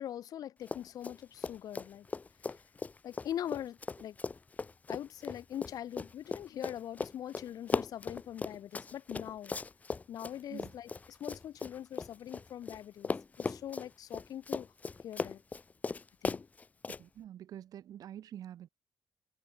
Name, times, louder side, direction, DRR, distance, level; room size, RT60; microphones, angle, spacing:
voice 1, 0.0-2.1 2.5-2.6 3.0-4.2 4.9-9.5 10.1-13.1 13.4-14.7 15.0-15.4 16.2-16.4, left 11 dB, 75° left, 2.1 m, -42 dB
Run, 0.6-1.2 1.4-12.8 13.0-17.0, left 4 dB, 25° left, 0.9 m, -38 dB
voice 2, 17.0-18.7, right 11 dB, 75° right, 2.6 m, -46 dB
cardioid pair, 150°, 6 cm